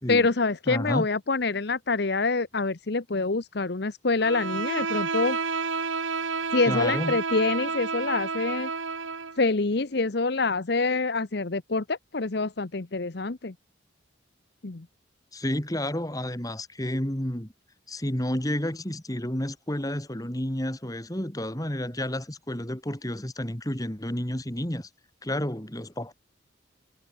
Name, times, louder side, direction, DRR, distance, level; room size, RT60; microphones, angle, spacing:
voice 1, 0.1-5.4 6.5-8.7 9.4-13.5 14.6-14.8, left 3 dB, 55° left, 0.9 m, -26 dB
voice 2, 0.7-1.1 6.7-7.2 15.3-17.5 17.9-24.9 25.2-26.1, left 1 dB, 20° left, 2.5 m, -30 dB
Bowed string instrument, 4.2-9.4, right 4 dB, 85° right, 2.2 m, -30 dB
head